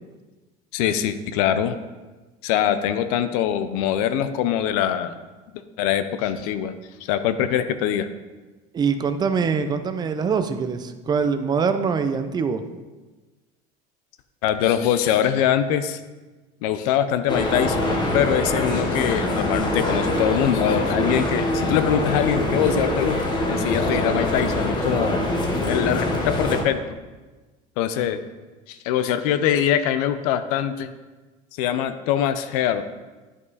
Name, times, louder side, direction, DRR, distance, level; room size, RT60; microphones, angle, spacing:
voice 1, 0.7-1.8 2.4-5.1 5.8-6.7 7.0-8.1 14.4-16.0 16.6-25.2 25.7-26.8 27.8-28.2 28.7-30.9 31.6-32.8, left 10 dB, 85° left, 11 dB, 0.6 m, -23 dB
voice 2, 8.7-12.6, right 5 dB, 20° right, 9 dB, 0.5 m, -23 dB
sound 1, 17.3-26.6, left 1 dB, 25° left, 1.1 m, -24 dB
9.7 x 5.4 x 4.1 m, 1.2 s
cardioid pair, 130°, 19 cm